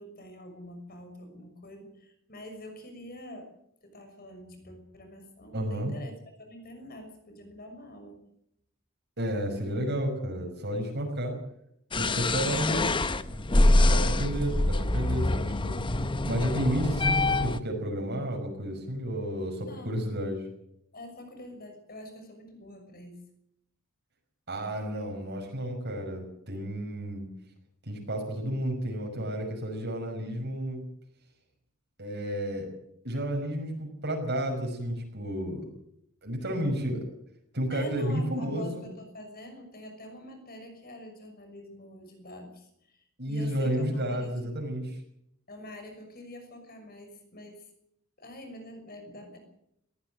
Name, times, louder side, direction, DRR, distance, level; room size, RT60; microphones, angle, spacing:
voice 1, 0.0-3.5 3.8-6.1 6.4-8.2 19.6-20.0 20.9-23.2 37.7-44.3 44.6-44.8 45.5-47.7 48.2-49.4, left 1 dB, 45° left, 6 dB, 6.1 m, -46 dB
voice 2, 5.5-5.9 9.2-11.3 11.9-12.9 13.8-15.8 16.2-20.4 24.5-27.3 27.8-30.8 32.0-32.7 33.0-35.7 36.2-37.0 37.5-38.9 43.2-45.0, equal, 50° right, 1 dB, 5.7 m, -31 dB
sound 1, 11.9-17.6, left 2 dB, 20° left, 0.8 m, -25 dB
21.0 x 17.0 x 7.8 m, 0.75 s
head